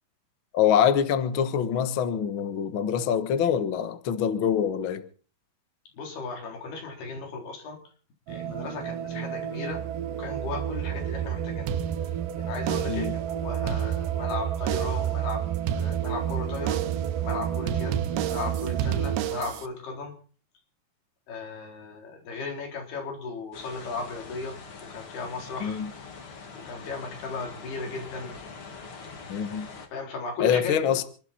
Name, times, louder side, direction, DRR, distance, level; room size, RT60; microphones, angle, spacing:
voice 1, 0.5-5.0 12.9-13.1 25.6-25.9 29.3-29.7 30.4-31.0, left 8 dB, 70° left, 1.2 m, -25 dB
voice 2, 5.9-7.8 8.3-9.9 10.2-11.7 12.4-15.4 15.7-20.1 21.3-25.8 26.6-28.3 29.9-31.0, left 4 dB, 90° left, 5.8 m, -36 dB
sound 1, 8.3-19.2, right 10 dB, 70° right, 2.6 m, -30 dB
sound 2, 11.7-12.3 12.7-13.2 13.5-14.3 14.7-15.1 15.7-16.3 16.7-17.1 17.7-19.7, right 10 dB, 85° right, 2.9 m, -31 dB
sound 3, 23.5-29.9, left 4 dB, 40° left, 2.3 m, -44 dB
28.0 x 12.0 x 4.3 m
omnidirectional pair, 4.4 m